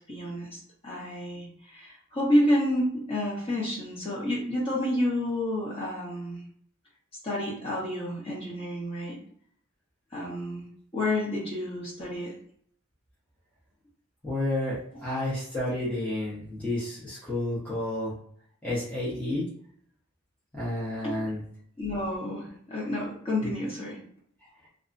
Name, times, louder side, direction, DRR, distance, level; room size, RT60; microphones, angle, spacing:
voice 1, 0.1-6.4 7.2-9.2 10.1-10.7 10.9-12.3 21.0-21.1 21.8-24.0, left 1 dB, 30° left, -6 dB, 1.1 m, -29 dB
voice 2, 14.2-18.1 18.6-19.5 20.5-21.4, left 1 dB, 5° left, -10 dB, 0.9 m, -30 dB
2.8 x 2.5 x 2.5 m, 0.62 s
head